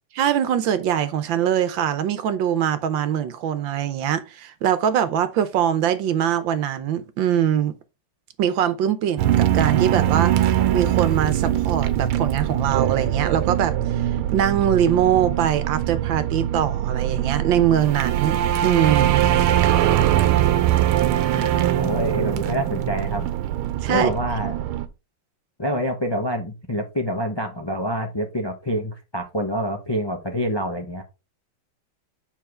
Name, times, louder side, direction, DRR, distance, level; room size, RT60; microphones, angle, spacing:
voice 1, 0.2-7.7 8.4-19.2 20.0-20.1 21.1-21.6 23.8-24.1, right 9 dB, 70° right, 1.4 m, -22 dB
sound 1, 9.2-24.9, right 12 dB, 90° right, 1.6 m, -22 dB
voice 2, 21.4-23.3 23.9-24.5 25.6-31.0, equal, 40° left, 0.3 m, -27 dB
7.4 x 5.6 x 3.3 m
omnidirectional pair, 2.3 m